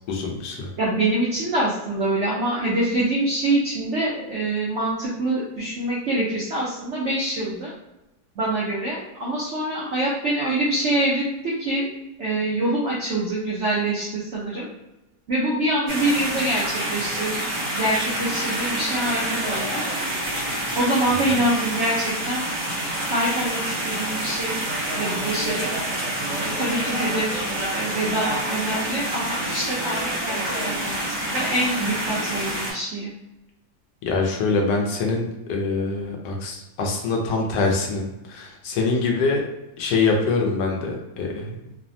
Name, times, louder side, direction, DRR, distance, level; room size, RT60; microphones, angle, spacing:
voice 1, 0.1-0.7 21.3-21.4 34.0-39.4 39.8-41.5, left 3 dB, 75° left, 1 dB, 1.1 m, -24 dB
voice 2, 0.8-7.7 8.4-11.9 12.2-14.7 15.3-17.4 17.7-19.8 20.7-22.4 23.1-24.6 25.0-25.7 26.4-27.4 27.7-33.1, right 1 dB, 70° right, -6 dB, 0.6 m, -25 dB
sound 1, 15.9-32.7, right 1 dB, 50° right, 1.2 m, -27 dB
3.2 x 2.1 x 2.6 m, 0.96 s
omnidirectional pair, 1.9 m